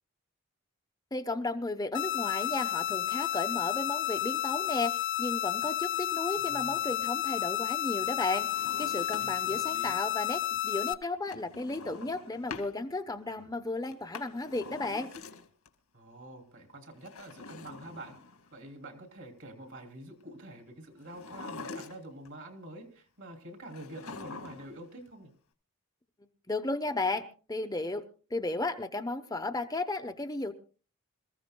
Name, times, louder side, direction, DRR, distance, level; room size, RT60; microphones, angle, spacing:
voice 1, 1.1-15.1 26.5-28.0 28.3-30.5, left 2 dB, 15° left, 6 dB, 0.8 m, -34 dB
sound 1, 1.9-10.9, left 12 dB, 55° left, 0.6 m, -31 dB
voice 2, 6.4-6.9 9.1-10.0 15.9-18.2 18.5-25.3, right 1 dB, 60° right, 4 dB, 3.2 m, -47 dB
Drawer open or close, 8.0-9.6 11.3-12.7 13.9-15.7 16.9-18.6 21.0-22.3 23.7-24.8 25.1-25.2, left 4 dB, 85° left, 2.2 m, -45 dB
27.0 x 15.0 x 2.2 m, 0.38 s
head